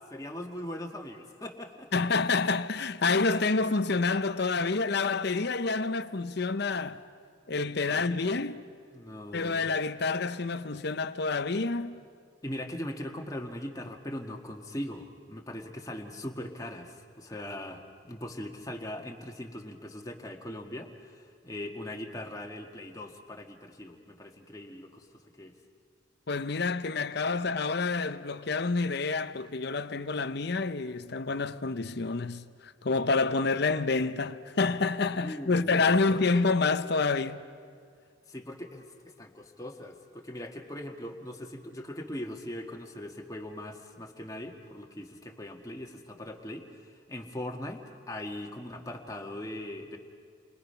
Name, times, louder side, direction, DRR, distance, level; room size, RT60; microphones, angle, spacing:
voice 1, 0.1-1.9 7.9-8.2 8.9-9.7 12.4-25.1 25.4-25.5 35.2-36.5 38.3-50.0, left 1 dB, 15° left, 1.7 m, -40 dB
voice 2, 1.9-7.0 7.5-8.7 9.3-12.0 26.3-37.4, left 4 dB, 55° left, 0.7 m, -28 dB
30.0 x 24.0 x 5.6 m
head